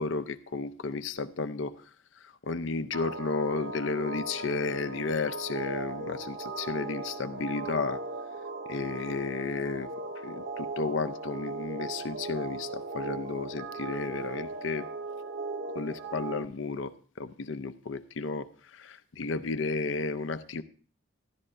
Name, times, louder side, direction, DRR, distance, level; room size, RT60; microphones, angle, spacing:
voice 1, 0.0-1.8 2.2-8.0 8.7-9.9 10.2-14.9 15.7-20.6, left 4 dB, 75° left, 0.6 m, -33 dB
sound 1, 2.9-16.5, right 3 dB, 80° right, 0.6 m, -38 dB
13.0 x 11.0 x 2.6 m
head